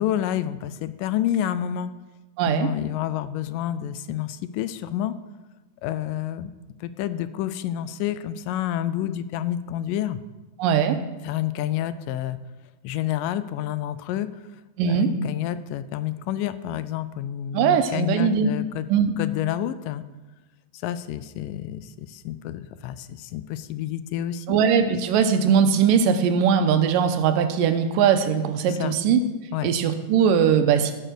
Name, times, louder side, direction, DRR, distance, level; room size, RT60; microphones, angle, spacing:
voice 1, 0.0-1.9 2.5-5.1 5.8-6.5 6.8-10.2 11.2-12.4 12.8-14.3 14.8-18.9 19.2-20.0 20.8-24.6 28.7-29.0 29.5-29.7, left 11 dB, 85° left, 14 dB, 2.2 m, -29 dB
voice 2, 2.4-2.7 10.6-11.0 14.8-15.1 17.5-18.5 18.9-19.1 24.5-29.2 29.6-30.9, right 7 dB, 85° right, 8 dB, 2.5 m, -20 dB
14.5 x 6.6 x 6.2 m, 1.2 s
omnidirectional pair, 3.8 m